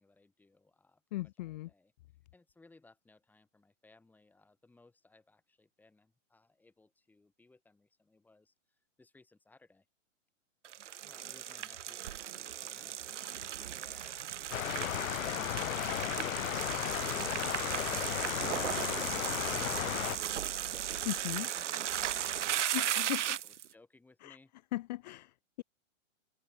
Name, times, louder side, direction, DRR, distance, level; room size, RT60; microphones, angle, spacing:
voice 1, 0.0-1.9 2.3-9.9 11.0-20.8 21.3-24.5, left 3 dB, 5° left, 5.4 m, -63 dB
voice 2, 1.1-1.7 21.0-21.5 22.7-23.4 24.2-24.4 24.7-25.3, left 17 dB, 35° left, 1.0 m, -37 dB
sound 1, 10.6-23.6, right 10 dB, 65° right, 2.0 m, -36 dB
sound 2, 14.5-20.2, left 13 dB, 90° left, 0.5 m, -35 dB
hypercardioid pair, 155°, 39 cm